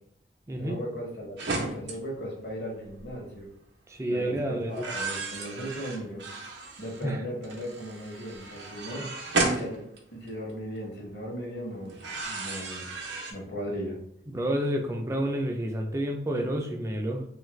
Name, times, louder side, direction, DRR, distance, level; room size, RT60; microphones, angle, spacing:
voice 1, 0.6-3.5 4.1-6.2 6.8-9.1 9.4-9.8 10.1-12.8 13.3-14.0, equal, 65° left, -2 dB, 0.9 m, -37 dB
sound 1, 1.4-1.9 2.9-3.1 4.7-7.0 7.4-10.5 11.9-13.3, right 3 dB, 80° right, 0.5 m, -33 dB
voice 2, 3.9-4.9 7.0-7.2 14.3-17.2, right 1 dB, 15° right, 3 dB, 0.3 m, -29 dB
3.1 x 2.4 x 3.1 m, 0.71 s
head